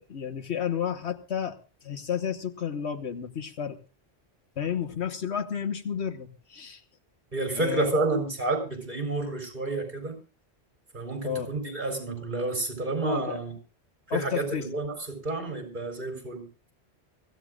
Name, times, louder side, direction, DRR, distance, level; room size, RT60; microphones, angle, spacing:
voice 1, 0.0-3.8 4.6-6.8 7.6-8.1 11.2-11.5 13.0-13.4 14.1-14.7 16.1-16.3, left 8 dB, 80° left, 8 dB, 1.5 m, -32 dB
voice 2, 7.3-10.2 10.9-13.5 14.1-16.5, right 2 dB, 45° right, 5 dB, 4.4 m, -30 dB
24.0 x 15.0 x 2.4 m, 0.33 s
omnidirectional pair, 1.1 m